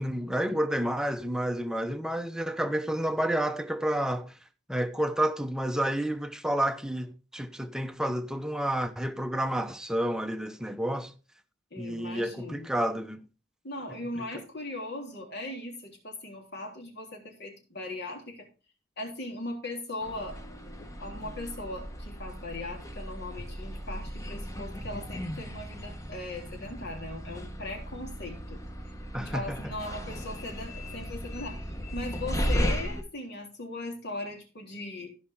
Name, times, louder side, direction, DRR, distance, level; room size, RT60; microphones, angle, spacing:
voice 1, 0.0-4.4 4.7-11.1 11.8-13.2 14.2-14.4 29.1-29.6, right 1 dB, 5° right, 0.8 m, -30 dB
voice 2, 11.7-12.7 13.6-18.5 19.0-20.4 20.8-28.6 29.2-31.6 31.9-35.1, left 2 dB, 60° left, 3.5 m, -39 dB
sound 1, 20.0-33.0, equal, 15° left, 1.2 m, -36 dB
15.5 x 5.8 x 3.7 m
head